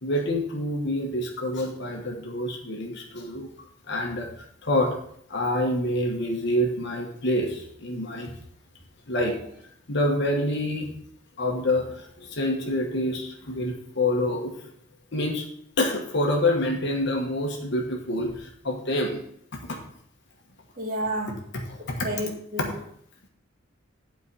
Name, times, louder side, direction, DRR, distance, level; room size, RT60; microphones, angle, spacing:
voice 1, 0.0-4.3 4.6-5.0 5.3-8.3 9.1-9.4 9.9-10.9 11.4-14.5 15.1-15.4 15.8-19.2 19.5-19.8 21.7-22.1, left 1 dB, 60° left, 1 dB, 1.3 m, -27 dB
voice 2, 20.8-21.3 22.0-22.7, right 1 dB, 45° right, 0 dB, 2.0 m, -30 dB
8.4 x 4.6 x 6.2 m, 0.67 s
head